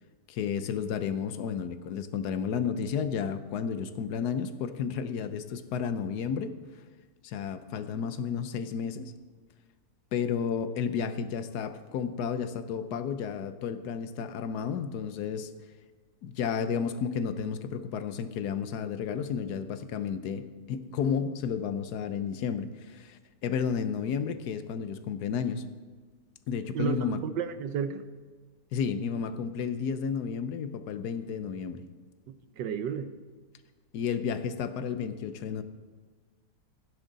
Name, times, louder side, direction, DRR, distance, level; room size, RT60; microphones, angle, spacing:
voice 1, 0.3-6.5 7.2-9.1 10.1-15.5 16.2-25.6 26.5-27.2 28.7-31.8 33.9-35.6, left 7 dB, 70° left, 11 dB, 1.2 m, -32 dB
voice 2, 26.7-28.0 32.6-33.1, right 7 dB, 90° right, 11 dB, 1.5 m, -32 dB
15.5 x 10.0 x 4.0 m, 1.4 s
omnidirectional pair, 1.9 m